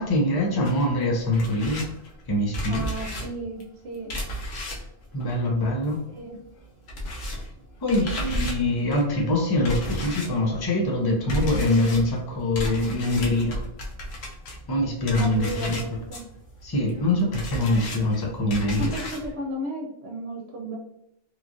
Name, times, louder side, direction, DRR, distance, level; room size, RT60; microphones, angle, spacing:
voice 1, 0.0-1.9 2.3-2.9 5.1-6.0 7.8-13.6 14.7-15.8 16.6-18.9, left 1 dB, 30° left, -1 dB, 0.5 m, -24 dB
sound 1, 0.6-6.2 6.4-19.3, equal, 75° left, 0.9 m, -34 dB
voice 2, 2.7-4.1 6.1-6.4 7.9-8.4 15.2-16.2 18.8-20.8, right 1 dB, 75° right, -1 dB, 1.0 m, -34 dB
3.0 x 2.4 x 2.5 m, 0.78 s
omnidirectional pair, 1.1 m